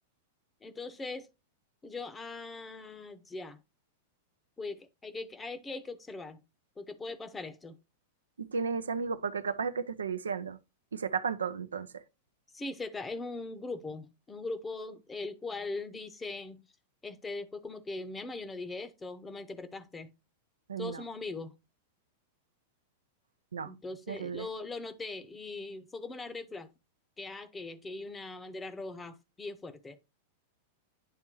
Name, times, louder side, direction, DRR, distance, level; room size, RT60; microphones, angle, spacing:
voice 1, 0.6-1.3 1.8-3.6 4.6-6.4 6.8-7.8 12.5-16.7 17.0-20.1 20.8-21.5 23.6-26.7 27.2-30.0, left 3 dB, 15° left, 0.7 m, -40 dB
voice 2, 8.4-10.6 10.9-11.9 20.7-21.0 23.5-23.7 24.1-24.5, right 5 dB, 85° right, 0.4 m, -33 dB
9.8 x 3.5 x 3.0 m
hypercardioid pair, 100°, 0 cm